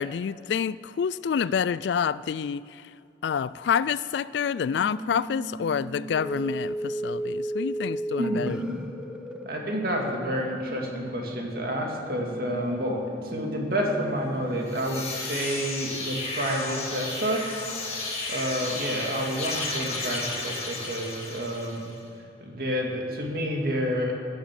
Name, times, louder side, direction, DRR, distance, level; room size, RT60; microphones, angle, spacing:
voice 1, 0.0-2.9 3.2-8.6, left 7 dB, 70° left, 0.3 m, -28 dB
sound 1, 4.7-14.7, right 1 dB, 5° right, 0.9 m, -36 dB
voice 2, 8.2-8.8 9.5-17.5 18.3-21.9 22.4-24.1, equal, 50° right, 2.3 m, -29 dB
sound 2, 14.5-21.9, left 3 dB, 35° left, 2.4 m, -33 dB
16.0 x 10.0 x 7.5 m
head